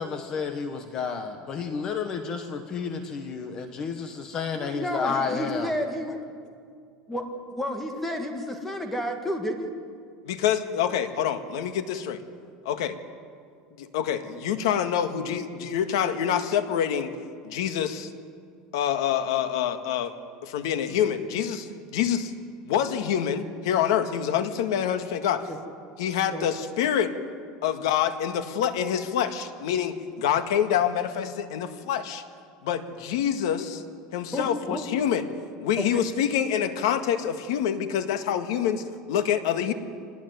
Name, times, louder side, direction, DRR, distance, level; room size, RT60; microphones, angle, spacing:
voice 1, 0.0-5.7, left 5 dB, 25° left, 7 dB, 1.3 m, -31 dB
voice 2, 4.5-6.2 7.1-9.7 25.5-25.6 26.3-26.5 34.3-34.8 35.8-36.0, equal, 10° left, 5 dB, 1.7 m, -31 dB
voice 3, 10.3-12.2 12.7-12.9 13.8-17.1 17.4-18.1 18.7-20.1 20.4-22.3 22.7-25.5 26.0-27.1 27.6-32.2 32.6-33.8 34.1-35.3 35.6-39.7, left 9 dB, 85° left, 9 dB, 1.8 m, -26 dB
24.5 x 19.5 x 9.5 m, 2.3 s
cardioid pair, 170°, 2 cm